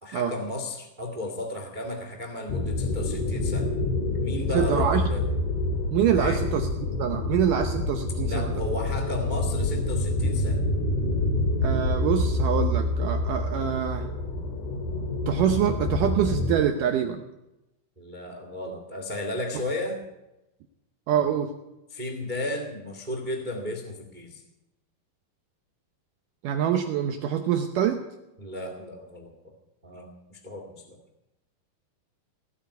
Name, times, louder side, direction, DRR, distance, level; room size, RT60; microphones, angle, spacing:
voice 1, 0.0-3.7 4.2-5.2 6.1-6.4 8.2-10.7 18.0-20.0 21.9-24.4 28.4-29.5 29.8-31.0, left 1 dB, 50° right, 4 dB, 0.5 m, -34 dB
sound 1, 2.5-16.6, left 2 dB, 70° left, 3.9 m, -27 dB
voice 2, 4.5-5.0 5.9-6.7 7.0-8.6 11.6-14.1 15.3-17.2 21.1-21.5 26.4-28.0, right 9 dB, 75° right, 6 dB, 2.0 m, -25 dB
18.0 x 8.1 x 9.5 m, 0.94 s
omnidirectional pair, 4.7 m